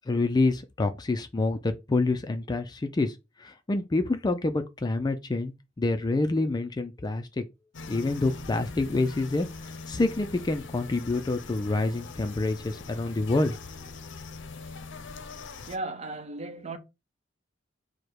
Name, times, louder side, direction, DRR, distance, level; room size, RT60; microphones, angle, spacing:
voice 1, 0.1-7.4 7.9-9.5 9.9-13.5, left 2 dB, 20° left, 0.3 m, -27 dB
sound 1, 7.7-15.8, left 4 dB, 65° left, 0.6 m, -42 dB
voice 2, 15.7-16.8, right 2 dB, 35° right, 0.7 m, -35 dB
4.9 x 2.1 x 4.5 m
head